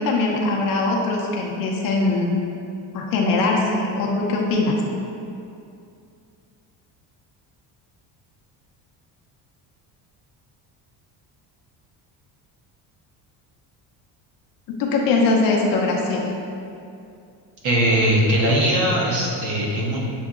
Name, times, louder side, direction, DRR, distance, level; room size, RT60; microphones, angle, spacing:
voice 1, 0.0-2.3 2.9-4.8 14.8-16.3, left 3 dB, 55° left, -1 dB, 0.6 m, -21 dB
voice 2, 17.6-20.0, right 1 dB, 45° right, -4 dB, 0.9 m, -20 dB
7.0 x 2.7 x 2.4 m, 2.5 s
cardioid pair, 160°, 43 cm